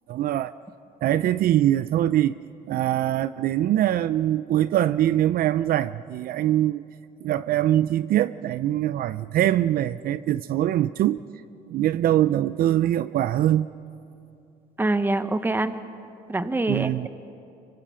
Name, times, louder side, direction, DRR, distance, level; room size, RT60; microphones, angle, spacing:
voice 1, 0.1-0.5 1.0-2.4 2.7-6.8 7.2-11.2 11.7-13.7 16.7-17.1, right 12 dB, 60° right, 15 dB, 0.5 m, -23 dB
voice 2, 14.8-15.8 16.3-17.1, right 2 dB, 10° right, 10 dB, 1.1 m, -25 dB
25.0 x 24.0 x 5.7 m, 2.6 s
cardioid pair, 110°, 17 cm